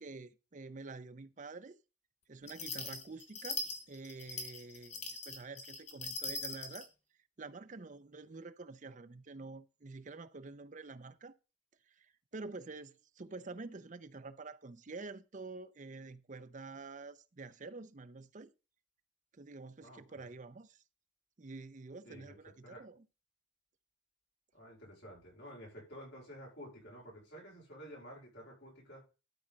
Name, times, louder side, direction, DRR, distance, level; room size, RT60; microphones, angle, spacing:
voice 1, 0.0-1.8 2.3-6.9 7.4-11.3 12.0-18.5 19.3-20.8 21.4-23.0, right 3 dB, 40° right, 0.6 m, -48 dB
sound 1, 2.5-6.9, left 3 dB, 35° left, 1.6 m, -41 dB
voice 2, 19.8-20.3 22.0-22.4 22.6-22.8 24.5-29.0, equal, 70° left, 5.1 m, -51 dB
12.0 x 4.3 x 5.3 m
head